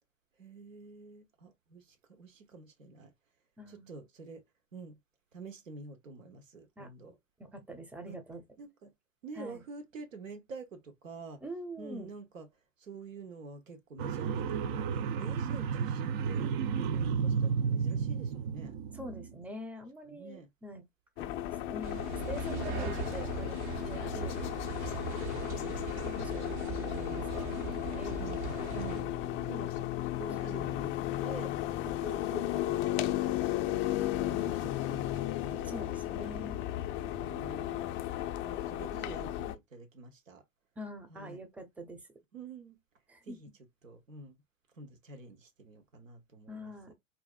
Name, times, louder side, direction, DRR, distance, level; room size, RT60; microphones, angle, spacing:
voice 1, 0.4-3.1 3.7-4.4 4.7-5.0 5.3-7.2 8.1-8.2 8.6-8.9 9.2-11.4 11.8-12.5 12.8-16.5 16.8-18.8 20.1-20.5 22.5-22.9 26.0-26.3 28.2-28.5 28.7-29.1 29.5-33.8 34.3-35.7 37.1-38.0 38.4-40.4 41.1-41.4 42.3-42.8 43.2-43.5 43.8-44.4 44.7-46.9, right 4 dB, 85° right, 1.1 m, -48 dB
voice 2, 3.6-3.9 6.8-6.9 7.4-8.4 9.4-9.6 11.4-12.1 18.9-20.8 21.2-24.5 24.9-25.5 26.2-27.3 27.6-28.3 28.7-29.2 35.7-36.6 40.8-42.1 43.1-43.4 46.5-46.9, equal, 5° right, 0.7 m, -45 dB
sound 1, 14.0-19.3, right 6 dB, 45° right, 0.4 m, -32 dB
sound 2, 21.2-39.6, left 13 dB, 35° left, 0.4 m, -35 dB
sound 3, 21.8-29.0, right 4 dB, 60° right, 1.2 m, -39 dB
4.2 x 2.6 x 2.4 m
hypercardioid pair, 95°, 38 cm